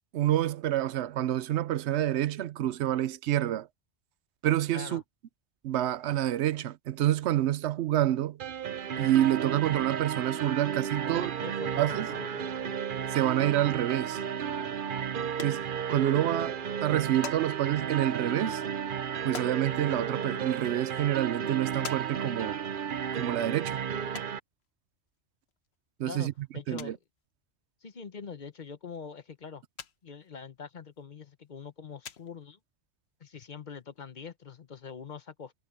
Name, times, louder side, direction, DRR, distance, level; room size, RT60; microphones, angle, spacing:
voice 1, 0.1-3.7 4.4-5.0 5.6-8.4 9.0-11.3 11.8-12.1 13.1-14.2 15.4-18.6 19.2-22.6 23.2-23.8 26.0-26.3 26.7-27.0, right 12 dB, 90° right, 0.9 m, -28 dB
sound 1, 8.4-24.4, right 8 dB, 55° right, 0.8 m, -33 dB
voice 2, 11.0-12.8 26.0-27.0 27.8-29.6 30.0-32.6 33.2-35.5, left 6 dB, 45° left, 1.0 m, -44 dB
sound 2, 14.9-15.0 15.3-16.2 16.5-16.6 16.8-17.5 17.9-19.6 20.4-20.5 21.0-21.1 21.8-22.1 22.3-22.4 24.2-24.3 25.5-25.7 26.0-26.1 26.4-26.5 26.8-27.0 28.4-28.5 28.9-29.0 29.8-30.0 30.2-30.3 31.6-31.7 32.0-32.5 33.4-33.5 33.7-33.8 34.0-34.1, left 7 dB, 70° left, 1.3 m, -43 dB
omnidirectional pair, 1.1 m